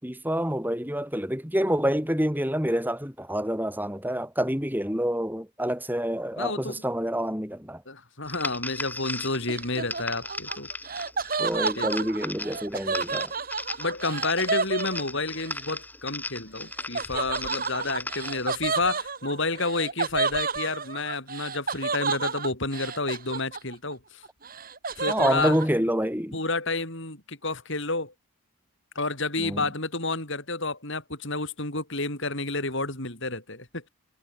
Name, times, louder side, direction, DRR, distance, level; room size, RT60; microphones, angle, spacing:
voice 1, 0.0-7.8 11.4-13.3 25.1-26.4 29.4-29.6, equal, 10° right, 6.7 m, -27 dB
voice 2, 6.4-6.8 7.9-10.7 11.8-12.1 13.8-24.2 25.0-25.5 26.3-28.1 28.9-33.9, left 3 dB, 55° left, 6.2 m, -30 dB
sound 1, 8.3-18.5, left 2 dB, 10° left, 6.0 m, -37 dB
Laughter, 9.5-15.5 16.9-23.9 24.2-25.7, right 4 dB, 40° right, 4.5 m, -31 dB
head